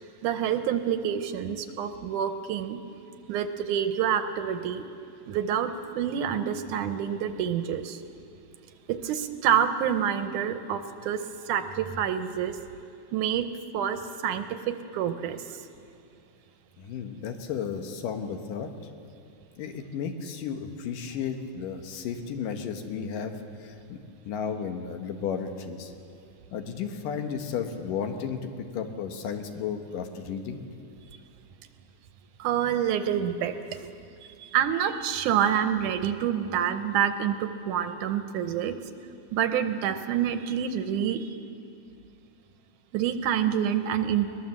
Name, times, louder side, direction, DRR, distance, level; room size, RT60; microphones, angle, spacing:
voice 1, 0.2-2.8 3.3-4.8 5.3-8.0 8.9-12.6 13.1-13.5 13.7-15.6 32.4-33.9 34.4-38.8 39.3-41.3 42.9-44.3, right 9 dB, 75° right, 9 dB, 2.2 m, -27 dB
voice 2, 16.8-18.7 19.6-24.0 24.3-25.9 26.5-30.7, left 7 dB, 80° left, 5 dB, 2.9 m, -33 dB
22.0 x 20.0 x 7.3 m, 2.5 s
omnidirectional pair, 3.8 m